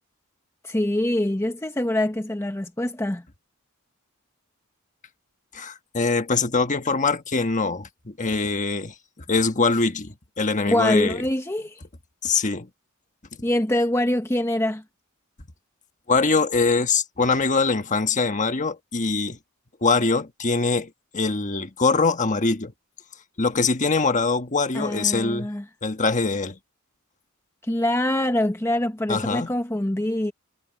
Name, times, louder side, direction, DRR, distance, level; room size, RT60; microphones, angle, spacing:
voice 1, 0.6-3.2 10.7-11.8 13.4-14.8 24.7-25.6 27.6-30.3, left 1 dB, 10° left, 0.9 m, -24 dB
voice 2, 5.5-11.2 12.2-12.7 16.1-19.4 19.8-22.7 23.4-25.5 25.8-26.6 29.1-29.5, left 4 dB, 35° left, 1.4 m, -23 dB
head